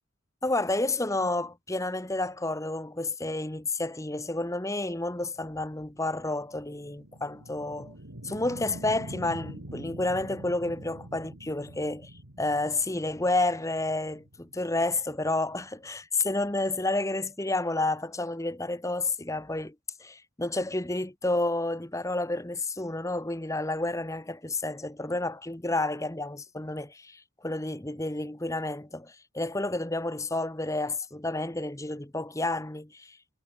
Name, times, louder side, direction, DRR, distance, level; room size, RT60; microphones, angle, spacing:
voice 1, 0.4-7.9 8.2-19.7 20.0-33.2, left 2 dB, 15° left, 1.1 m, -30 dB
sound 1, 5.3-16.0, right 1 dB, 80° right, 3.1 m, -45 dB
head